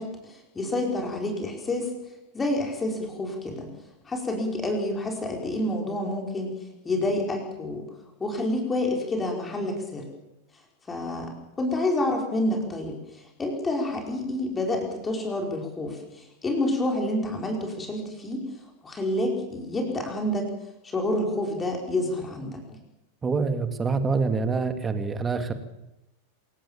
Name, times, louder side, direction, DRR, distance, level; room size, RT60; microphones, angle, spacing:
voice 1, 0.0-1.9 2.3-3.7 4.1-6.5 6.8-7.8 8.2-10.1 10.9-18.5 18.8-20.5 20.8-22.6, left 1 dB, 15° left, 1 dB, 5.3 m, -28 dB
voice 2, 23.2-25.5, right 4 dB, 15° right, 8 dB, 2.6 m, -26 dB
27.0 x 18.0 x 7.3 m, 0.90 s
figure-of-eight pair, 90°, 0 cm